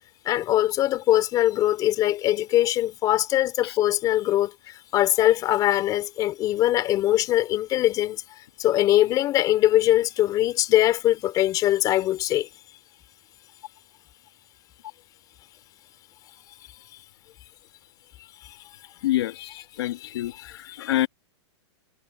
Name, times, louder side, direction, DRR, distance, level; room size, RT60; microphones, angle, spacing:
voice 1, 0.2-4.5 4.9-8.2 8.6-12.5 19.4-20.9, left 14 dB, 25° left, 4.2 m, -22 dB
voice 2, 19.0-19.3 19.8-21.1, left 14 dB, 60° left, 1.8 m, -26 dB
hypercardioid pair, 160°, 15 cm